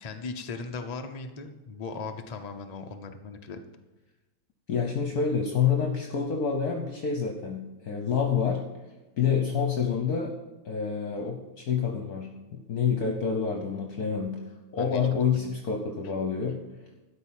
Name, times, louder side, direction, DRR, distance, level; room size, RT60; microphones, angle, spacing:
voice 1, 0.0-3.6 14.8-15.5, left 4 dB, 75° left, 5 dB, 0.3 m, -38 dB
voice 2, 4.7-8.6 9.2-10.3 10.6-14.4 14.7-16.6, left 6 dB, 55° left, 3 dB, 1.4 m, -27 dB
12.5 x 5.4 x 8.8 m, 1.1 s
omnidirectional pair, 2.1 m